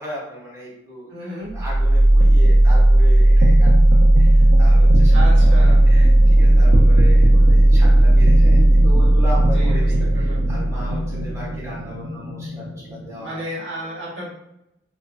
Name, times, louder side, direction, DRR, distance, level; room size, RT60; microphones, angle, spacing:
voice 1, 0.0-13.4 13.8-13.9, equal, 15° right, -7 dB, 1.0 m, -37 dB
voice 2, 1.1-1.5 5.1-5.8 9.5-10.5 13.2-14.3, right 1 dB, 65° right, -5 dB, 1.0 m, -33 dB
sound 1, 1.5-13.4, right 1 dB, 85° right, 0.5 m, -14 dB
2.6 x 2.0 x 2.4 m, 0.85 s
head